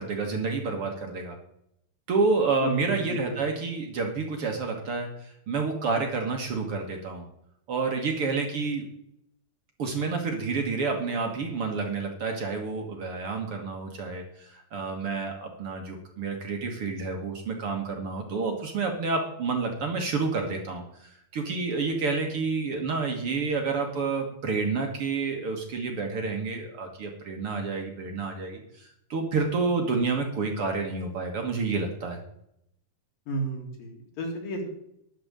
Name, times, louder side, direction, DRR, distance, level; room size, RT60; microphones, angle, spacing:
voice 1, 0.0-1.4 2.1-7.2 7.7-8.9 9.8-32.2, right 4 dB, 50° right, 2 dB, 2.0 m, -29 dB
voice 2, 2.6-3.6 33.3-34.7, right 1 dB, 75° left, 2 dB, 4.1 m, -33 dB
12.0 x 5.2 x 8.7 m, 0.75 s
omnidirectional pair, 4.1 m